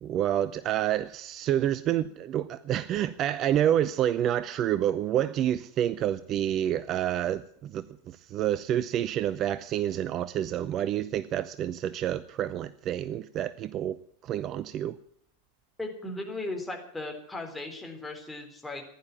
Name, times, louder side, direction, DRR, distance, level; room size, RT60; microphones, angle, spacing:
voice 1, 0.0-15.0, right 11 dB, 35° right, 0.5 m, -28 dB
voice 2, 15.8-18.8, left 2 dB, 5° left, 3.8 m, -37 dB
15.5 x 11.0 x 8.5 m
figure-of-eight pair, 90°, 0 cm